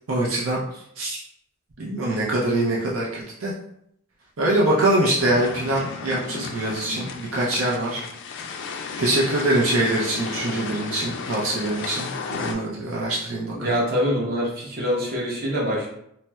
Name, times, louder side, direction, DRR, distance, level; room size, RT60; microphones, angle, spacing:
voice 1, 0.1-0.6 1.0-1.2 1.8-3.5 4.4-8.0 9.0-13.8, right 1 dB, 80° right, -5 dB, 0.6 m, -24 dB
sound 1, 5.2-12.5, left 5 dB, 60° left, 0.3 m, -34 dB
voice 2, 13.5-15.9, equal, 45° right, -4 dB, 0.9 m, -24 dB
4.1 x 2.1 x 2.2 m, 0.73 s
head